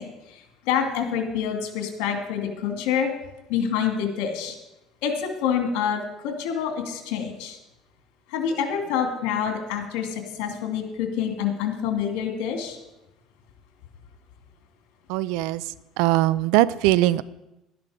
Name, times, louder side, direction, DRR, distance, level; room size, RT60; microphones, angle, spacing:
voice 1, 0.0-3.1 3.5-4.5 5.0-7.6 8.3-12.8, left 7 dB, 85° left, 5 dB, 2.5 m, -27 dB
voice 2, 15.1-15.6 16.0-17.2, right 16 dB, 80° right, 19 dB, 0.5 m, -20 dB
12.0 x 11.0 x 5.0 m, 0.94 s
cardioid pair, 125°, 0 cm